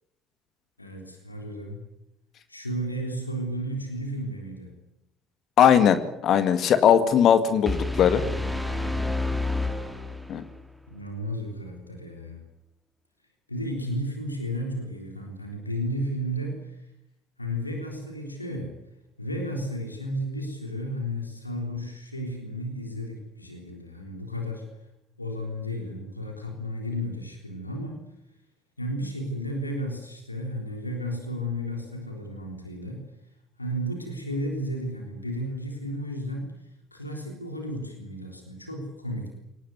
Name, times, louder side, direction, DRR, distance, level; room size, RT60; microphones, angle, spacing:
voice 1, 0.8-1.8 2.5-4.7 8.2-9.1 10.9-12.4 13.5-16.9 17.4-18.7 19.2-24.7 25.2-28.0 28.8-33.0 33.6-39.3, equal, 85° left, 2 dB, 3.6 m, -33 dB
voice 2, 5.6-8.2 10.3-10.4, left 8 dB, 45° left, 11 dB, 2.0 m, -19 dB
sound 1, 7.7-10.6, left 2 dB, ahead, 2.6 m, -29 dB
23.5 x 19.0 x 9.5 m, 0.82 s
figure-of-eight pair, 55°, 0 cm